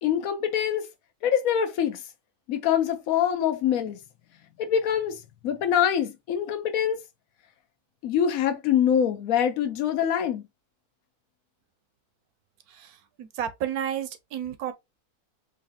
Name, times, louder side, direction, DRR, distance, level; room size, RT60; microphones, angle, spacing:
voice 1, 0.0-0.8 1.2-2.0 2.5-4.0 4.6-7.0 8.0-10.4, left 9 dB, 70° left, 1.0 m, -24 dB
voice 2, 12.7-14.7, right 9 dB, 75° right, 1.1 m, -32 dB
4.0 x 2.6 x 2.6 m
omnidirectional pair, 1.6 m